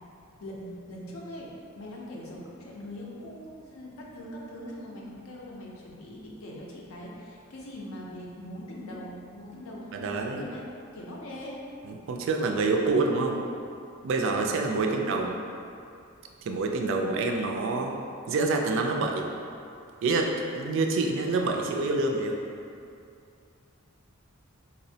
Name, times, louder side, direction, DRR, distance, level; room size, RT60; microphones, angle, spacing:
voice 1, 0.4-10.6 10.9-11.6 14.7-15.0, equal, 70° left, -3 dB, 0.5 m, -41 dB
voice 2, 9.9-10.5 11.9-13.4 14.0-15.3 16.4-17.9 18.3-19.3 20.0-22.4, right 3 dB, 60° right, 2 dB, 0.3 m, -27 dB
4.1 x 2.0 x 2.7 m, 2.5 s
head